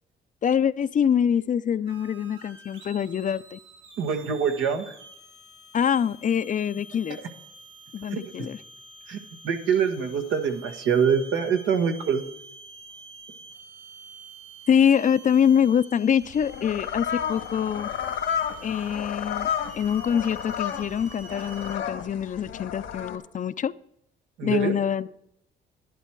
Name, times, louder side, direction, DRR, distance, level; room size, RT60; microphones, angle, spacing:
voice 1, 0.4-3.6 5.7-7.2 7.9-8.6 14.7-17.9 18.6-19.5 19.7-23.7 24.4-25.1, left 8 dB, 40° left, 0.5 m, -24 dB
sound 1, 1.9-21.8, right 3 dB, 70° right, 3.8 m, -48 dB
voice 2, 4.0-4.9 8.1-8.2 9.1-9.2 9.4-12.2 24.4-24.7, right 7 dB, 90° right, 1.5 m, -24 dB
magellanic penguin, 16.2-23.2, left 8 dB, 85° left, 1.4 m, -32 dB
11.5 x 11.0 x 4.6 m
cardioid pair, 90°, 20 cm